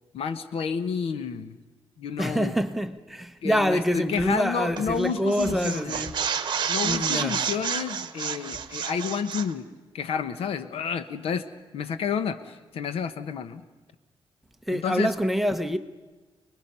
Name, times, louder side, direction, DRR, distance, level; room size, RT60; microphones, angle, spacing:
voice 1, 0.1-1.6 2.0-2.5 3.4-6.0 6.7-9.6 9.9-13.6 14.7-15.1, left 6 dB, 80° left, 1.1 m, -30 dB
voice 2, 2.2-6.1 6.8-7.4 14.7-15.8, equal, ahead, 0.9 m, -26 dB
sound 1, 4.8-5.0 5.3-9.5, right 7 dB, 50° right, 1.1 m, -30 dB
29.5 x 20.5 x 5.5 m
cardioid pair, 135°, 10 cm